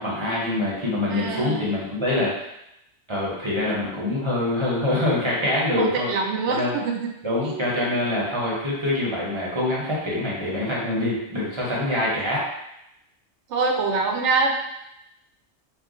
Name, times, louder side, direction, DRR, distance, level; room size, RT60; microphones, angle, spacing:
voice 1, 0.0-2.3 3.1-6.1 6.5-6.7 7.2-12.4, left 1 dB, 30° right, -6 dB, 0.7 m, -25 dB
voice 2, 1.1-1.6 5.8-7.0 7.4-7.7 13.5-14.5, right 4 dB, 85° right, 2 dB, 0.9 m, -24 dB
2.5 x 2.3 x 3.7 m, 0.84 s
omnidirectional pair, 1.2 m